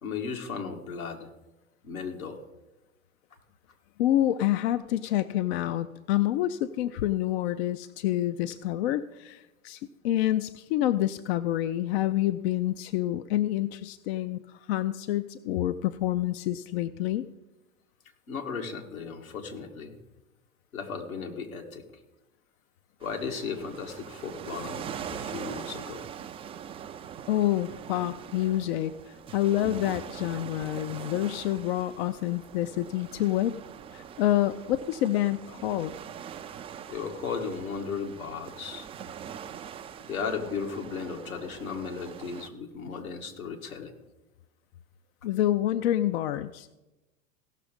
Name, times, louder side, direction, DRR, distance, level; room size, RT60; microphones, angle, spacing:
voice 1, 0.0-1.3 1.8-2.4 18.3-20.0 20.7-21.8 23.0-26.1 36.9-38.9 40.0-43.9, left 5 dB, 80° left, 2 dB, 1.8 m, -35 dB
voice 2, 4.0-17.3 27.3-33.5 33.9-35.9 45.2-46.7, left 13 dB, 50° left, 12 dB, 0.5 m, -28 dB
sound 1, 23.0-42.5, right 8 dB, 15° right, 0.3 m, -42 dB
16.5 x 6.2 x 5.2 m, 1.0 s
figure-of-eight pair, 90°, 42 cm